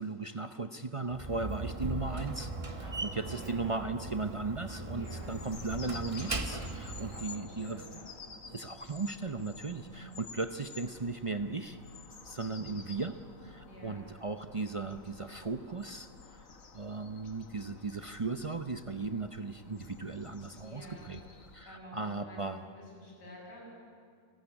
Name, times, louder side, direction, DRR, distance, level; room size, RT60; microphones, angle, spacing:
voice 1, 0.0-7.9 8.4-11.8 12.3-13.2 13.4-16.5 16.7-21.2 21.5-22.6, right 3 dB, 55° right, 8 dB, 0.3 m, -37 dB
Slam, 1.1-7.3, right 2 dB, 25° right, 1.0 m, -39 dB
voice 2, 3.4-3.9 4.9-5.3 6.9-8.1 9.7-10.2 12.5-12.9 13.6-14.0 20.6-21.1 21.6-22.4 22.7-23.7, equal, 80° left, -3 dB, 7.6 m, -50 dB
sound 1, 5.0-21.6, left 4 dB, 55° left, 1.9 m, -51 dB
29.0 x 13.5 x 9.9 m, 2.2 s
omnidirectional pair, 1.8 m